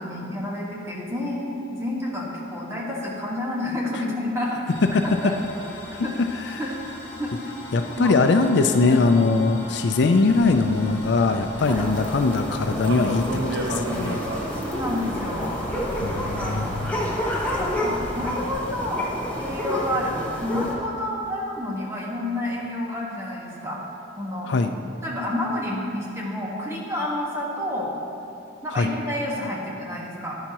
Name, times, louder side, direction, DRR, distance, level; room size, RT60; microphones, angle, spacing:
voice 1, 0.0-4.7 5.0-5.3 6.0-6.1 6.6-6.7 7.2-7.5 7.9-8.2 8.8-9.2 11.6-11.8 14.5-15.6 16.4-16.9 17.4-19.1 19.4-23.8 24.2-24.5 25.0-27.9 28.6-30.4, left 1 dB, 15° right, -4 dB, 1.4 m, -29 dB
sound 1, 4.7-21.8, left 2 dB, 45° left, 2.5 m, -43 dB
voice 2, 4.8-5.3 5.9-6.6 7.7-14.2 16.0-17.1 24.5-24.7 28.7-28.9, left 3 dB, 65° left, 7 dB, 0.4 m, -21 dB
sound 2, 10.3-18.5, right 1 dB, 65° right, 1.1 m, -34 dB
sound 3, 11.6-20.7, equal, 10° left, 1.2 m, -30 dB
10.5 x 10.5 x 2.9 m, 2.6 s
head